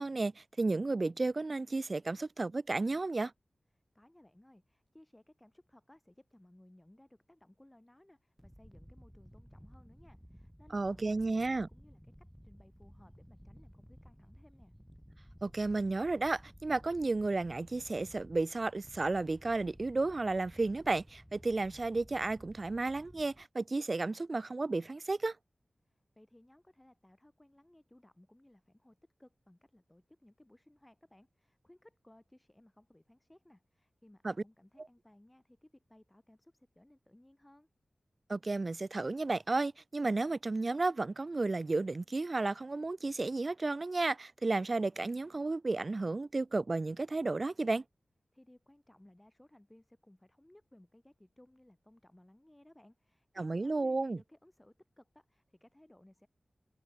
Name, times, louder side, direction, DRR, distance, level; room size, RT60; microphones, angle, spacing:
voice 1, 0.0-3.3 10.7-11.7 15.4-25.4 34.2-34.3 38.3-47.8 53.4-54.2, right 3 dB, 45° right, 0.3 m, -33 dB
voice 2, 3.7-14.7 25.8-37.7 48.3-56.3, left 1 dB, 15° left, 6.7 m, -62 dB
sound 1, 8.4-23.4, equal, ahead, 4.8 m, -56 dB
wide cardioid pair, 65°, 0 cm